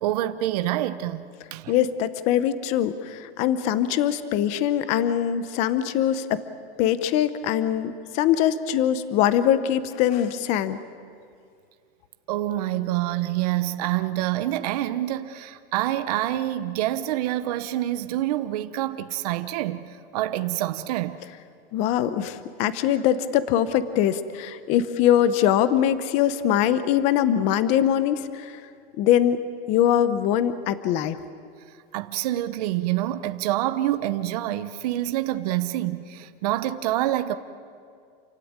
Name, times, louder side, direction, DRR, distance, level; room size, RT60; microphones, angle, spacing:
voice 1, 0.0-1.2 1.5-1.7 12.3-19.8 20.1-21.2 31.9-37.3, right 14 dB, 40° right, 0.9 m, -26 dB
voice 2, 1.7-2.9 3.4-6.4 6.8-10.8 21.7-28.2 29.0-29.4 29.7-31.2, left 10 dB, 20° left, 0.7 m, -22 dB
28.5 x 16.0 x 9.6 m
supercardioid pair, 170°, 31 cm